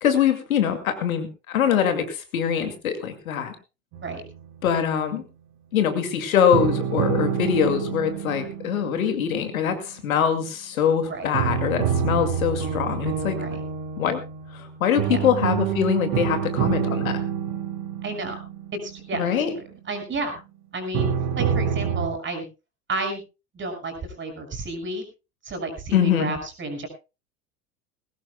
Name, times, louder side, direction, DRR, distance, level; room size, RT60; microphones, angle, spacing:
voice 1, 0.0-3.6 4.6-5.2 5.7-13.4 14.0-14.2 14.5-17.2 19.1-19.5 25.9-26.3, left 8 dB, 70° left, 8 dB, 2.4 m, -23 dB
sound 1, 3.9-5.1 6.5-10.5 11.3-20.1 20.9-22.1, right 8 dB, 50° right, 3.5 m, -28 dB
voice 2, 18.0-18.4 18.8-20.3 20.7-22.4 22.9-23.2 23.5-25.1 25.4-26.9, right 2 dB, 25° right, 6 dB, 6.0 m, -31 dB
20.5 x 17.0 x 2.3 m, 0.30 s
figure-of-eight pair, 75°, 43 cm